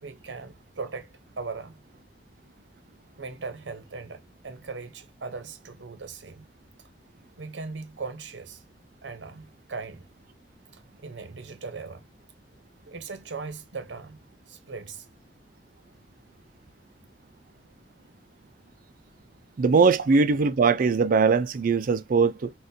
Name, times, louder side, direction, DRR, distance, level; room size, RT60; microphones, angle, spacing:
voice 1, 0.0-1.1 1.4-1.8 3.2-6.5 7.4-8.6 9.0-10.0 10.7-12.1 12.9-14.2 14.5-15.1 20.0-20.1, right 4 dB, 85° right, 0.7 m, -38 dB
voice 2, 19.6-22.5, right 4 dB, 50° right, 0.4 m, -21 dB
3.8 x 2.4 x 2.7 m
head